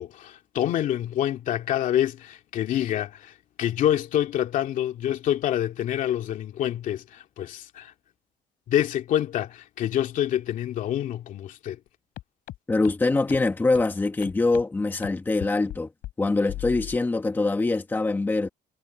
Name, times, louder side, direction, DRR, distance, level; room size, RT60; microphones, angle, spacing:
voice 1, 0.0-3.3 3.6-7.9 8.7-11.8, left 11 dB, 55° left, 2.4 m, -27 dB
sound 1, 12.2-12.3 12.5-12.6 12.8-12.9 13.3-13.4 13.7-13.8 14.2-14.6 15.0-15.1 15.4-15.8 16.0-16.1 16.5-17.0, left 15 dB, 75° left, 3.8 m, -36 dB
voice 2, 12.7-15.9 16.2-18.5, left 3 dB, 10° left, 1.4 m, -24 dB
cardioid pair, 170°, 16 cm